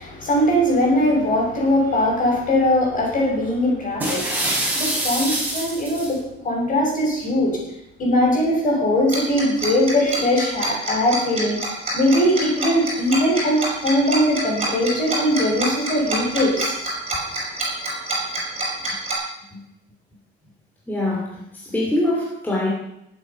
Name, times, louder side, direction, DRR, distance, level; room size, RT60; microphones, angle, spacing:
voice 1, 0.0-6.2 6.4-7.6 8.0-16.8, left 1 dB, 40° left, -1 dB, 6.2 m, -20 dB
sound 1, 4.0-6.1, right 1 dB, 10° right, 5.5 m, -24 dB
Tick-tock, 9.1-19.1, right 2 dB, 30° right, 6.3 m, -26 dB
voice 2, 20.9-22.7, left 1 dB, 10° left, -3 dB, 2.6 m, -24 dB
19.5 x 8.0 x 5.7 m, 0.83 s
cardioid pair, 155°, 21 cm